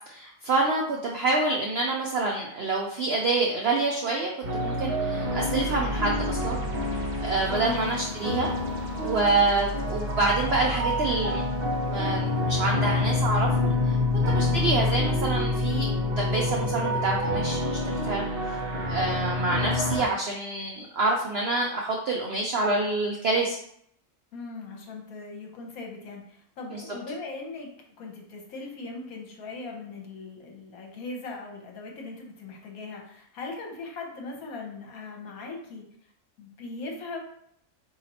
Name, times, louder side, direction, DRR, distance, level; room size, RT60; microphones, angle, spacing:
voice 1, 0.1-6.6 7.2-8.5 9.0-11.4 11.9-14.0 14.3-18.3 18.9-23.6 26.7-26.8, right 3 dB, 70° right, -1 dB, 0.6 m, -27 dB
sound 1, 4.4-20.1, left 2 dB, 45° right, 0.9 m, -27 dB
voice 2, 5.1-5.5 7.5-8.2 14.3-14.6 19.1-19.4 24.3-27.7 28.0-35.9 36.4-37.2, left 3 dB, 65° left, 0 dB, 1.3 m, -39 dB
4.1 x 2.8 x 4.1 m, 0.70 s
omnidirectional pair, 1.7 m